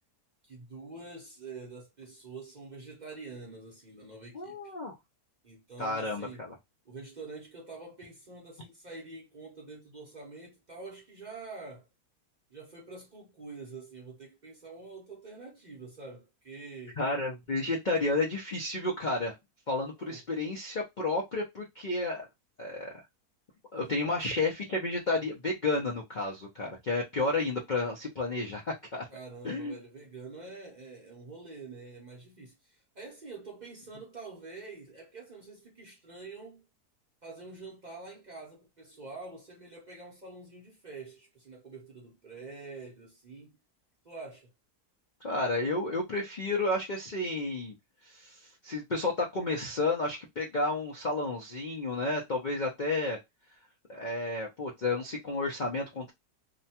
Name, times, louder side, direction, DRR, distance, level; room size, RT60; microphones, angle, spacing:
voice 1, 0.4-4.7 5.4-6.4 6.9-11.9 12.5-17.0 20.0-20.2 23.7-24.1 29.1-36.7 37.2-43.6 44.0-44.5, right 3 dB, 45° right, 0.6 m, -46 dB
voice 2, 4.3-4.9 5.8-6.6 17.0-19.3 19.7-22.3 22.6-22.9 23.7-29.1 29.4-29.8 45.2-47.7 48.0-53.2 53.9-56.1, left 2 dB, 85° left, 0.4 m, -31 dB
2.8 x 2.2 x 2.7 m
omnidirectional pair, 1.7 m